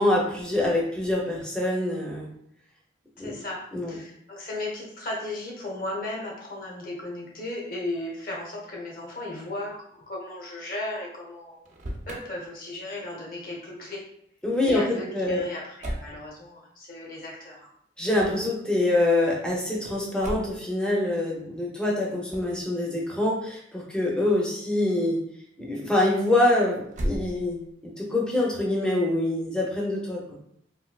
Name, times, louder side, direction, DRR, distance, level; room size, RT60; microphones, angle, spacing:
voice 1, 0.0-2.3 3.2-3.3 3.7-3.9 14.4-15.4 18.0-25.2 25.6-30.4, left 1 dB, 5° left, -3 dB, 0.6 m, -25 dB
voice 2, 3.2-3.6 3.9-11.7 12.1-14.0 14.6-17.7, left 1 dB, 50° left, -3 dB, 0.9 m, -35 dB
Motor vehicle (road), 11.5-12.2 15.8-16.2 18.1-18.5 20.2-20.7 22.3-22.6 26.9-27.7, equal, 40° right, 0.5 m, -34 dB
3.2 x 2.7 x 2.3 m, 0.70 s
head